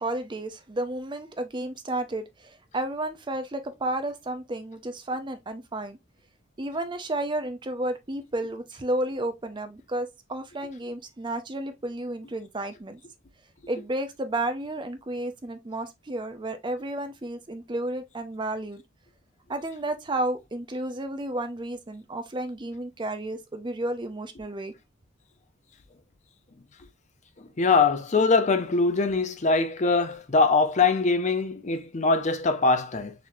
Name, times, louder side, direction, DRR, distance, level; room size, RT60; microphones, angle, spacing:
voice 1, 0.0-6.0 6.6-13.0 13.7-18.8 19.5-24.7, right 1 dB, 25° right, 0.5 m, -32 dB
voice 2, 27.6-33.1, left 4 dB, 35° left, 0.5 m, -22 dB
4.0 x 3.1 x 2.6 m
head